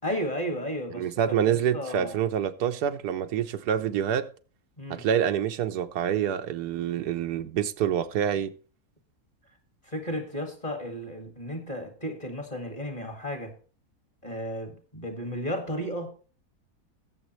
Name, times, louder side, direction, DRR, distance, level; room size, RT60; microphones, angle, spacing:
voice 1, 0.0-1.4 1.7-2.2 4.8-5.0 9.9-13.5 14.2-16.1, equal, 25° left, 2.0 m, -33 dB
voice 2, 0.9-4.3 4.9-8.5, right 9 dB, 85° right, 1.3 m, -27 dB
21.5 x 7.3 x 3.1 m
omnidirectional pair, 1.6 m